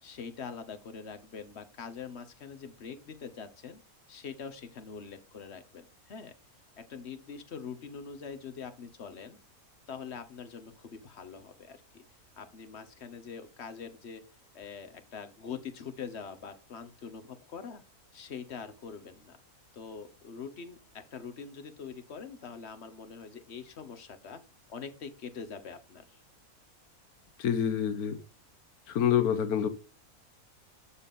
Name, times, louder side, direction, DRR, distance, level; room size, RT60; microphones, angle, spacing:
voice 1, 0.0-3.8 4.1-6.3 6.8-9.4 9.9-12.0 12.4-14.2 14.5-17.8 18.1-19.4 19.7-24.4 24.7-26.2, left 6 dB, 50° left, 1.2 m, -44 dB
voice 2, 27.4-28.2 28.9-29.7, left 8 dB, 90° left, 1.4 m, -27 dB
12.5 x 4.2 x 3.7 m
omnidirectional pair, 1.5 m